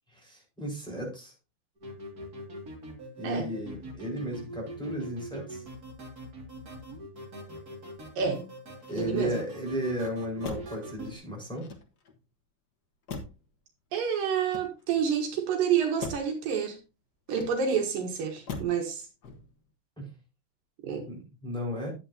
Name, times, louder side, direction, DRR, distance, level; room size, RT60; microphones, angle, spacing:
voice 1, 0.1-1.3 3.2-5.6 8.9-11.7 20.0-20.1 21.1-21.9, equal, ahead, -3 dB, 4.5 m, -34 dB
sound 1, 1.8-11.2, right 1 dB, 30° right, 2.3 m, -43 dB
voice 2, 8.2-8.5 8.9-9.3 13.9-16.8 17.3-19.1 20.8-21.0, right 7 dB, 75° right, 3 dB, 3.0 m, -28 dB
Motor vehicle (road), 8.8-9.6 10.4-10.9 11.5-12.2 13.1-13.5 14.3-15.1 16.0-16.4 17.3-17.9 18.5-18.9 19.2-19.7, left 4 dB, 70° left, 0.9 m, -41 dB
11.0 x 8.9 x 2.8 m, 0.28 s
omnidirectional pair, 4.1 m